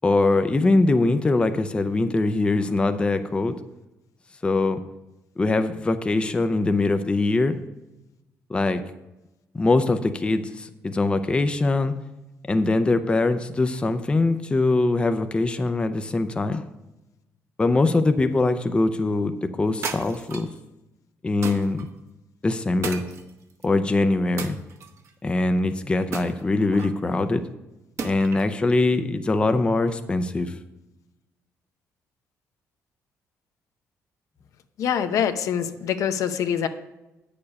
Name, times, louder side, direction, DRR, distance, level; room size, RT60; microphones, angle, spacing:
voice 1, 0.0-3.6 4.4-4.8 5.4-7.6 8.5-8.8 9.5-11.9 12.5-16.6 17.6-20.5 21.2-21.9 22.4-23.0 23.6-24.6 25.2-27.4 28.0-30.6, left 2 dB, 20° left, 9 dB, 0.5 m, -22 dB
sound 1, 19.8-20.6 21.4-21.9 22.8-23.7 24.4-25.1 26.1-27.0 28.0-28.5, right 5 dB, 55° right, 1.0 m, -35 dB
voice 2, 34.8-36.7, left 8 dB, 65° left, 9 dB, 0.6 m, -24 dB
8.5 x 6.8 x 5.3 m, 0.98 s
cardioid pair, 120°, 6 cm